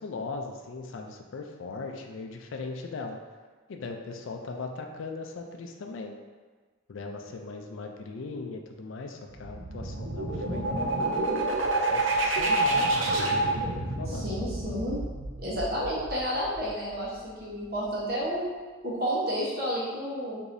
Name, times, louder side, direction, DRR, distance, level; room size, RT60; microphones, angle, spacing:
voice 1, 0.0-3.2 3.7-6.2 6.9-10.7 11.9-13.0 13.6-14.3, left 3 dB, 70° left, 3 dB, 0.4 m, -39 dB
sound 1, 9.3-16.9, right 2 dB, 70° right, 0.6 m, -28 dB
voice 2, 14.1-15.0 15.4-18.4 18.8-20.4, equal, 50° right, -6 dB, 1.0 m, -31 dB
4.8 x 2.7 x 2.6 m, 1.4 s
head